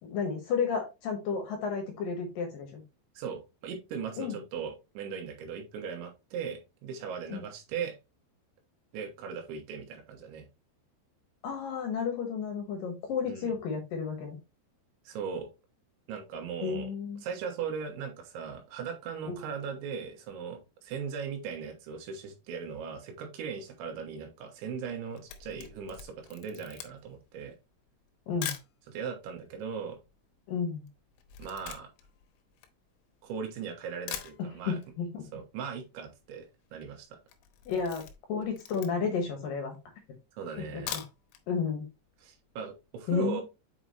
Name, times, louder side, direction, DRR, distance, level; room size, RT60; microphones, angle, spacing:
voice 1, 0.0-2.8 4.2-4.4 7.3-7.4 11.4-14.4 16.6-17.2 19.3-19.4 28.3-28.5 30.5-30.8 34.4-35.2 37.7-38.0 38.3-39.8 40.7-41.0 41.5-41.8 43.1-43.4, left 5 dB, 65° left, 4 dB, 2.3 m, -32 dB
voice 2, 3.2-8.0 8.9-10.5 13.3-13.6 15.1-15.5 16.1-16.9 17.2-27.6 28.9-30.0 31.4-31.9 33.2-34.8 35.3-36.5 36.7-37.2 40.3-41.0 42.2-43.4, right 6 dB, 80° right, 4 dB, 3.7 m, -38 dB
Camera, 25.1-28.8 29.4-29.5 29.7-33.4 33.8-33.9 34.1-34.9 35.2-35.3 35.6-35.7 35.9-36.3 36.6-36.9 37.2-39.2 39.8-39.9 40.7-41.4 41.8-41.9 42.3-42.4, left 10 dB, 90° left, 3.5 m, -43 dB
7.9 x 5.2 x 2.9 m, 0.27 s
omnidirectional pair, 5.4 m